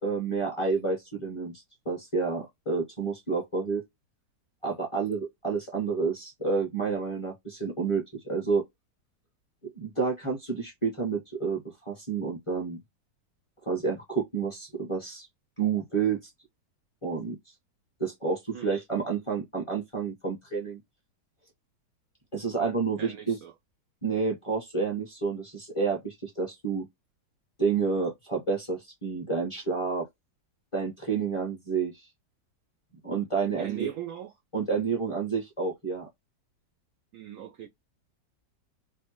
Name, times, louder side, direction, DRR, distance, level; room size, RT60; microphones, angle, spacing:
voice 1, 0.0-3.8 4.6-8.6 9.8-12.8 13.6-15.3 15.6-16.3 17.0-17.4 18.0-20.8 22.3-23.4 24.0-26.9 27.6-30.1 30.7-32.1 33.0-33.9 34.5-36.1, right 5 dB, 25° left, 0.7 m, -29 dB
voice 2, 23.0-23.5 33.6-34.3 37.1-37.7, right 9 dB, 80° right, 0.7 m, -39 dB
3.2 x 2.0 x 2.9 m
omnidirectional pair, 1.9 m